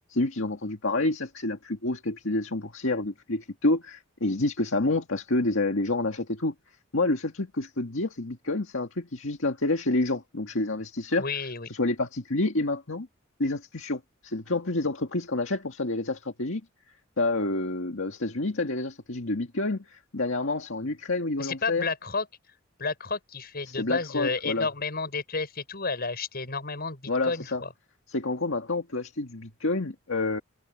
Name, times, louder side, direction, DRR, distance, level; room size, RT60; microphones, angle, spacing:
voice 1, 0.1-6.5 6.9-11.2 11.7-13.1 13.4-16.6 17.2-21.9 23.7-24.7 27.1-27.6 28.1-30.4, left 2 dB, 70° left, 2.0 m, -28 dB
voice 2, 11.2-11.7 21.4-22.3 22.8-27.7, left 4 dB, 50° left, 6.2 m, -31 dB
head